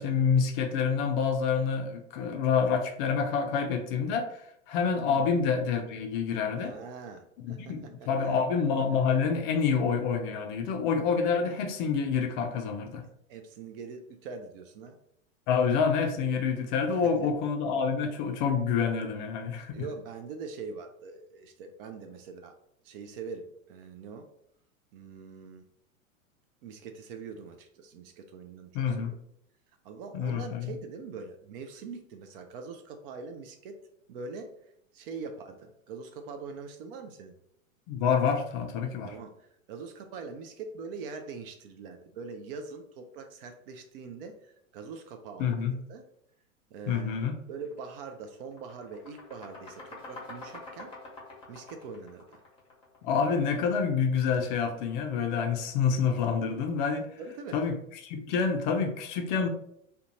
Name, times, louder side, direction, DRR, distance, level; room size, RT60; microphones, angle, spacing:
voice 1, 0.0-4.4 4.7-6.7 7.4-13.0 15.5-19.8 28.7-29.1 30.1-30.7 37.9-39.1 45.4-45.8 46.9-47.3 53.0-57.1 57.5-59.5, left 6 dB, 40° left, 4 dB, 0.4 m, -27 dB
voice 2, 6.6-8.4 13.3-15.0 17.0-17.1 19.7-22.6 22.8-24.3 24.9-25.6 26.6-29.2 29.8-33.8 34.1-37.4 39.1-46.0 46.7-47.1 47.5-50.9 51.5-52.4 57.2-57.6, right 4 dB, 45° right, 6 dB, 0.4 m, -43 dB
sound 1, 47.6-47.8 48.1-53.1, left 2 dB, 15° left, 0.9 m, -46 dB
2.4 x 2.2 x 2.8 m, 0.72 s
hypercardioid pair, 105°, 40 cm